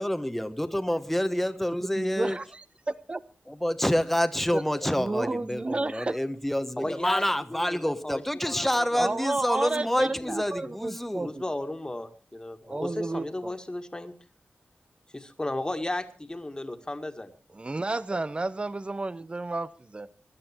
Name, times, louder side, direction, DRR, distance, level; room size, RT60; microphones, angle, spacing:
voice 1, 0.0-2.4 3.6-11.3, equal, 5° left, 1.2 m, -27 dB
voice 2, 2.0-3.2 4.5-6.2 6.8-6.9 9.0-11.4 12.7-13.5 17.5-20.1, right 2 dB, 25° right, 0.7 m, -31 dB
voice 3, 6.8-7.2 7.5-9.3 10.0-10.7 11.2-14.1 15.1-17.3, left 1 dB, 20° left, 2.0 m, -35 dB
22.5 x 11.0 x 4.5 m
wide cardioid pair, 85°, 4 cm